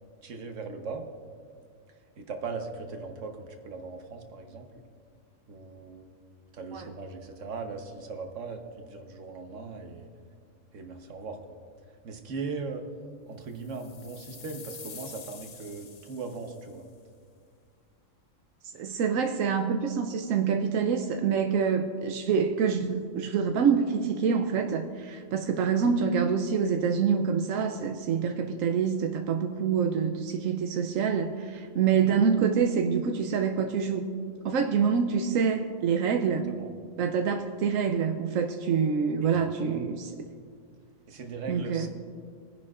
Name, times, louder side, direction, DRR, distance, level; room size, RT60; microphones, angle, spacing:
voice 1, 0.2-1.0 2.2-4.7 5.5-6.1 6.5-10.1 10.7-11.4 12.0-12.8 13.3-16.9 36.5-36.7 39.2-39.8 41.1-41.9, right 4 dB, 70° right, 4 dB, 1.4 m, -39 dB
sound 1, 13.6-16.8, left 6 dB, 45° left, 0.5 m, -47 dB
voice 2, 18.8-34.0 34.4-36.5 37.0-40.1 41.5-41.9, right 6 dB, 90° right, 5 dB, 1.1 m, -26 dB
22.5 x 10.5 x 2.5 m, 2.2 s
omnidirectional pair, 1.3 m